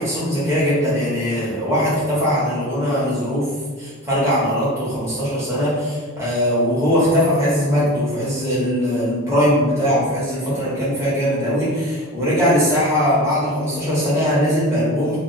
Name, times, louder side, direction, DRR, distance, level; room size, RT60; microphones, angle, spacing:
voice 1, 0.0-3.5 3.8-15.2, equal, 15° right, -10 dB, 1.1 m, -20 dB
2.5 x 2.4 x 4.0 m, 1.5 s
head